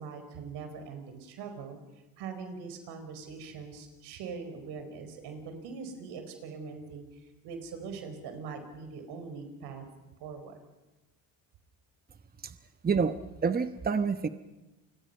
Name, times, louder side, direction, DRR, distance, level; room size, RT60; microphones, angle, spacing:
voice 1, 0.0-1.8 2.2-9.9 10.2-10.6, right 5 dB, 80° right, 7 dB, 4.7 m, -42 dB
voice 2, 12.8-13.2 13.4-14.3, right 5 dB, 25° right, 10 dB, 1.0 m, -27 dB
29.0 x 21.5 x 5.6 m, 1.1 s
supercardioid pair, 85°, 39 cm